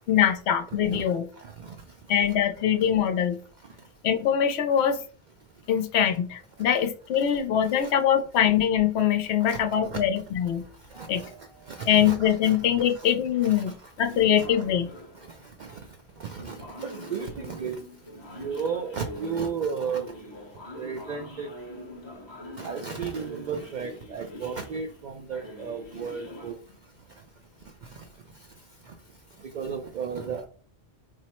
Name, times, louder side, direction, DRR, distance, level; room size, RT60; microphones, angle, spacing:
voice 1, 0.1-1.3 2.1-3.4 4.0-5.0 5.7-10.6 11.1-11.2 11.9-14.9, left 9 dB, 90° left, 7 dB, 0.9 m, -23 dB
voice 2, 1.4-1.8 7.8-7.9 9.5-10.0 10.9-11.3 11.7-12.7 12.9-13.1 13.4-13.6 14.4-14.5 15.3-15.8 16.2-17.8 18.3-20.0 20.8-21.5 22.6-26.6 27.9-28.0 29.4-30.5, right 6 dB, 55° right, 5 dB, 0.6 m, -34 dB
sound 1, 10.9-11.9 12.8-12.9 13.3-13.7 14.1-15.4 16.4-26.5, left 1 dB, 30° left, 0.7 m, -44 dB
4.6 x 2.0 x 4.2 m, 0.41 s
omnidirectional pair, 1.1 m